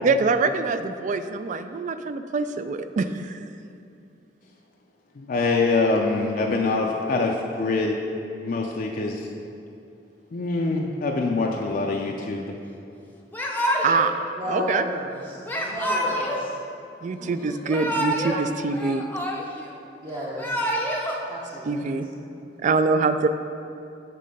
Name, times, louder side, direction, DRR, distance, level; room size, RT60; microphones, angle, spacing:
voice 1, 0.0-3.3 13.8-14.9 17.0-19.0 21.6-22.1 22.6-23.3, right 4 dB, 45° right, 10 dB, 0.3 m, -24 dB
voice 2, 5.2-8.0 8.4-9.3 10.3-12.5, left 3 dB, 50° left, 0 dB, 0.4 m, -24 dB
Yell / Crying sobbing, 13.3-14.1 15.5-16.4 17.5-18.4 18.7-19.7 20.2-21.1, equal, 10° left, 0.6 m, -27 dB
voice 3, 14.4-16.5 17.2-17.3 20.0-20.5 21.3-22.0, equal, 25° right, -6 dB, 0.8 m, -33 dB
8.4 x 3.7 x 5.3 m, 2.6 s
head